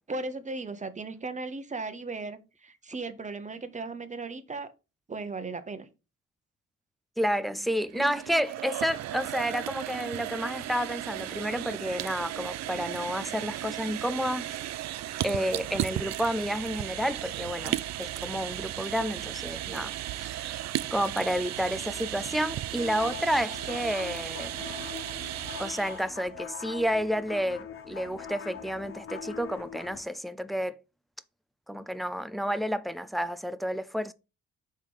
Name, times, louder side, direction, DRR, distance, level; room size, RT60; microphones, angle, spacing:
voice 1, 0.1-4.7 5.1-5.9, right 3 dB, 25° right, 0.9 m, -36 dB
voice 2, 7.2-14.4 15.2-20.6 20.9-24.6 25.6-30.8 31.7-34.1, equal, ahead, 0.4 m, -30 dB
sound 1, 7.8-26.1, right 14 dB, 65° right, 0.4 m, -35 dB
sound 2, 22.8-30.0, left 7 dB, 45° left, 0.8 m, -42 dB
5.6 x 3.7 x 4.8 m
cardioid pair, 90°, 30 cm